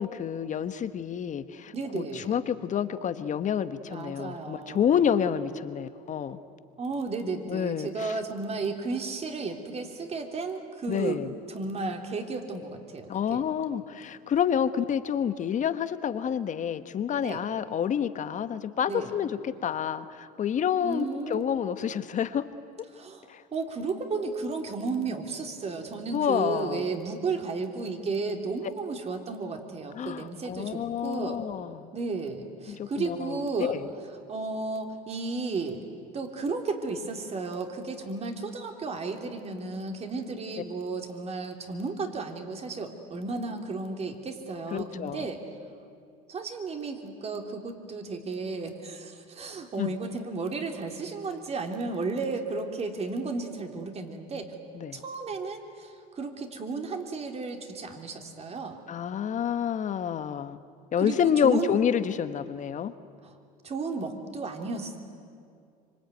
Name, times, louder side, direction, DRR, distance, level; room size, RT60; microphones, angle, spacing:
voice 1, 0.0-6.4 7.5-8.1 10.9-11.3 13.1-22.4 23.3-23.4 26.1-26.8 29.9-31.9 32.7-33.8 44.7-45.3 49.8-49.9 54.7-55.0 58.9-60.6 60.9-62.9, left 8 dB, 40° left, 11 dB, 1.4 m, -28 dB
voice 2, 1.7-2.3 3.9-5.0 6.8-11.2 11.5-13.5 17.2-17.4 18.9-19.1 20.8-21.5 22.9-31.4 31.9-33.7 34.3-35.8 36.1-45.4 46.3-54.5 54.9-58.8 61.0-61.8 63.2-63.4 63.6-65.0, right 4 dB, 35° right, 4 dB, 3.5 m, -33 dB
25.5 x 24.5 x 9.4 m, 2.4 s
supercardioid pair, 95°, 19 cm